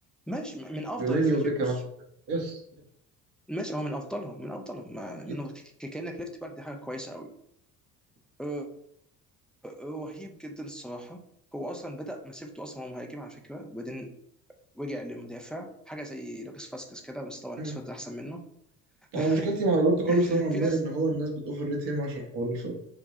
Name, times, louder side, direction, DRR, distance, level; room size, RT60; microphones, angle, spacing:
voice 1, 0.3-1.5 3.5-7.3 8.4-8.7 9.6-11.2 11.5-14.1 14.7-18.5 19.1-19.5 20.1-20.8, equal, ahead, 3 dB, 0.4 m, -37 dB
voice 2, 1.0-1.8 2.3-2.6 17.6-17.8 19.1-22.8, right 2 dB, 55° right, 1 dB, 1.1 m, -26 dB
3.7 x 2.2 x 3.9 m, 0.72 s
hypercardioid pair, 55°, 49 cm